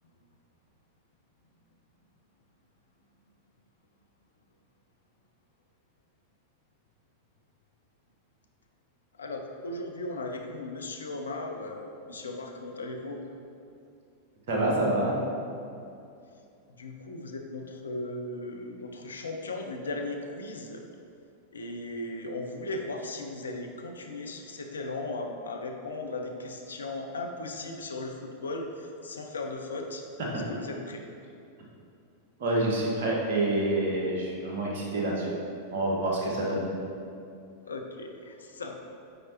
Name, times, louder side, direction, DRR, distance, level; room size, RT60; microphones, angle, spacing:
voice 1, 9.2-13.2 16.7-20.8 21.5-30.0 30.3-31.1 37.7-38.7, left 2 dB, 70° left, 3 dB, 0.6 m, -37 dB
voice 2, 14.5-15.1 30.3-30.4 32.4-35.3 35.7-36.6, right 1 dB, 55° right, -3 dB, 1.4 m, -27 dB
9.1 x 4.5 x 2.9 m, 2.5 s
figure-of-eight pair, 90°, 0 cm